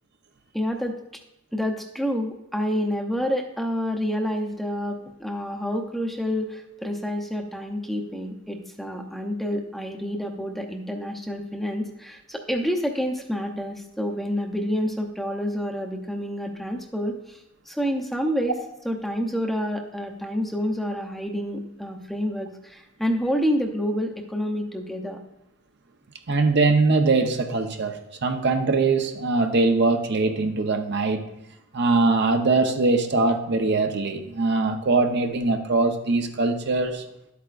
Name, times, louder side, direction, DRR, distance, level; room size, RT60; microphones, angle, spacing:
voice 1, 0.5-1.0 1.5-17.4 17.7-18.5 18.8-25.2, equal, ahead, 2 dB, 0.7 m, -28 dB
voice 2, 26.3-31.2 31.7-37.0, right 3 dB, 60° right, 5 dB, 0.8 m, -22 dB
11.5 x 8.3 x 2.5 m, 0.88 s
head